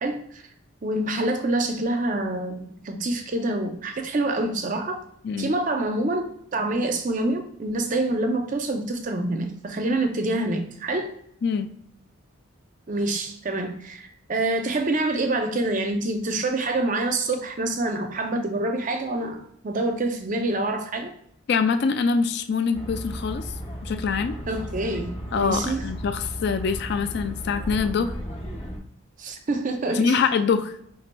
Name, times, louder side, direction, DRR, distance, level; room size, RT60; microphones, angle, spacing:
voice 1, 0.0-0.4 0.8-5.0 5.4-6.2 6.5-11.1 12.9-21.1 24.5-25.8 29.2-30.2, right 2 dB, 35° right, 5 dB, 0.5 m, -26 dB
voice 2, 21.5-23.4 23.8-24.3 25.3-28.1 29.9-30.8, left 5 dB, 50° left, 9 dB, 0.3 m, -24 dB
sound 1, 22.7-28.8, equal, 25° left, 0.8 m, -35 dB
5.4 x 3.2 x 2.2 m, 0.70 s
head